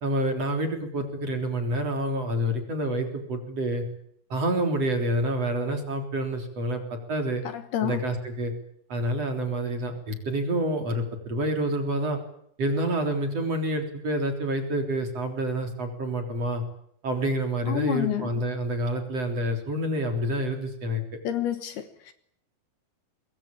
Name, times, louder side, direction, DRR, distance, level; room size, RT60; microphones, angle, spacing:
voice 1, 0.0-3.8 4.3-7.4 7.8-8.5 8.9-12.2 12.6-16.6 17.0-21.0, right 1 dB, 35° right, 4 dB, 4.3 m, -28 dB
voice 2, 7.4-8.0 17.6-18.4 21.2-22.1, left 12 dB, 70° left, 10 dB, 3.0 m, -29 dB
25.0 x 21.0 x 9.0 m, 0.70 s
omnidirectional pair, 5.2 m